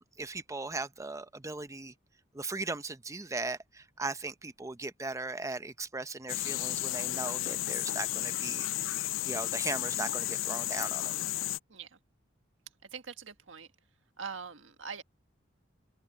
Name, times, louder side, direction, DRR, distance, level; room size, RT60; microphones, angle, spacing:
voice 1, 0.0-1.9 2.3-11.2, right 3 dB, 15° right, 0.7 m, -38 dB
sound 1, 6.3-11.6, left 16 dB, 80° left, 0.4 m, -33 dB
voice 2, 12.8-13.7 14.2-15.0, right 6 dB, 90° right, 1.7 m, -43 dB
open air
head